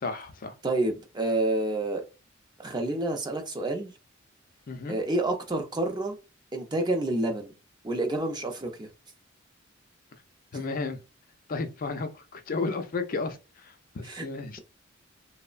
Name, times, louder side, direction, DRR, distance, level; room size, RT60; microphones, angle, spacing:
voice 1, 0.0-0.5 4.7-5.0 10.5-11.0 11.5-14.6, left 3 dB, 45° left, 0.4 m, -33 dB
voice 2, 0.6-2.0 2.6-3.9 4.9-6.2 6.5-7.5 7.8-8.9 14.0-14.2, right 2 dB, 20° right, 0.4 m, -28 dB
3.0 x 2.0 x 2.4 m
head